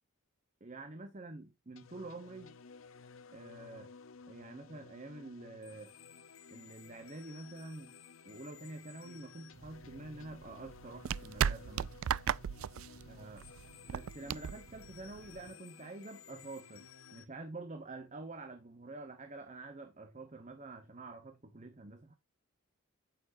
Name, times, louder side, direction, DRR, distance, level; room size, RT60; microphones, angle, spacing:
voice 1, 0.6-2.6 3.3-3.9 4.3-5.9 6.5-7.9 8.2-11.9 13.0-13.4 13.9-22.1, right 2 dB, 35° right, 1.0 m, -47 dB
sound 1, 1.8-17.2, left 5 dB, 70° left, 0.7 m, -55 dB
sound 2, 9.6-15.5, right 8 dB, 75° right, 0.3 m, -37 dB
9.1 x 6.8 x 2.7 m
head